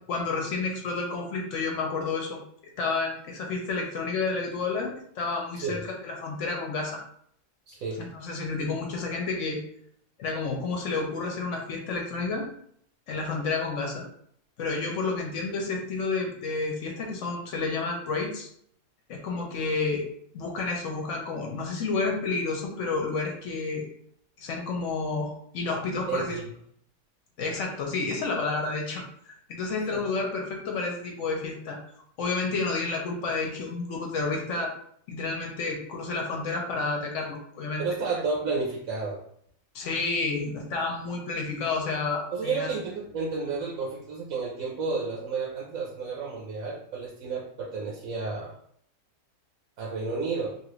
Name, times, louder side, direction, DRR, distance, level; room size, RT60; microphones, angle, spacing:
voice 1, 0.1-7.0 8.0-9.6 10.2-12.5 13.1-14.0 14.6-18.5 19.1-20.1 20.3-23.8 24.4-26.4 27.4-31.8 32.2-34.7 35.1-37.8 39.7-42.7, left 3 dB, 65° left, 1 dB, 0.9 m, -30 dB
voice 2, 7.7-8.1 26.1-26.5 29.9-30.1 37.8-39.2 42.3-48.5 49.8-50.6, right 4 dB, 75° right, -3 dB, 1.0 m, -31 dB
2.9 x 2.4 x 3.0 m, 0.66 s
omnidirectional pair, 1.5 m